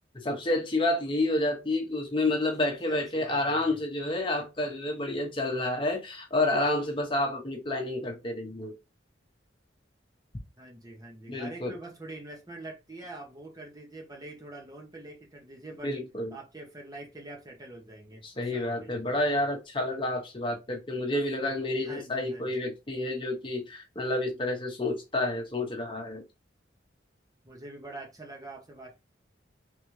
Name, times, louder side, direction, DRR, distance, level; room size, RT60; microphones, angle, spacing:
voice 1, 0.1-8.7 11.3-11.7 15.8-16.3 18.2-26.2, left 1 dB, 30° left, 1.0 m, -29 dB
voice 2, 2.6-3.8 10.6-15.9 16.3-19.2 21.8-22.5 27.4-29.0, right 2 dB, 20° right, 1.0 m, -45 dB
3.9 x 3.5 x 3.2 m
head